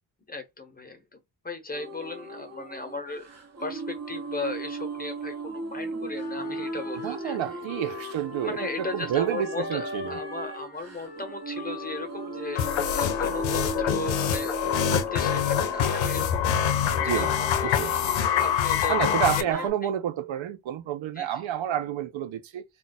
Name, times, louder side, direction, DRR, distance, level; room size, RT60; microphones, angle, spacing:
voice 1, 0.3-1.2 1.4-3.3 3.6-7.4 8.4-17.7 18.2-19.9 21.1-21.3, left 3 dB, 20° left, 0.9 m, -36 dB
sound 1, 1.7-19.7, right 2 dB, 35° right, 1.0 m, -37 dB
Wind instrument woodwind instrument, 6.1-14.3, left 4 dB, 55° left, 0.8 m, -42 dB
voice 2, 7.0-10.2 17.0-17.3 17.6-18.0 18.9-22.6, right 10 dB, 85° right, 0.6 m, -29 dB
sound 2, 12.6-19.4, left 9 dB, 90° left, 0.5 m, -25 dB
2.4 x 2.2 x 4.0 m
cardioid pair, 85°, 45 cm